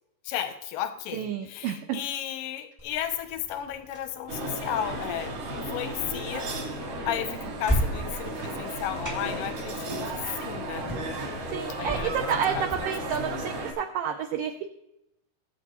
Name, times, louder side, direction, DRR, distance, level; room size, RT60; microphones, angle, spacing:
voice 1, 0.2-6.5 7.0-10.9 11.8-12.9, left 10 dB, 80° left, 9 dB, 1.9 m, -34 dB
voice 2, 1.1-2.0 11.5-14.5, right 8 dB, 85° right, 6 dB, 1.9 m, -30 dB
sound 1, 2.8-12.8, equal, 10° right, 0.9 m, -36 dB
sound 2, 4.3-13.7, right 1 dB, 55° right, 3.3 m, -34 dB
19.5 x 8.2 x 3.1 m, 0.85 s
omnidirectional pair, 4.7 m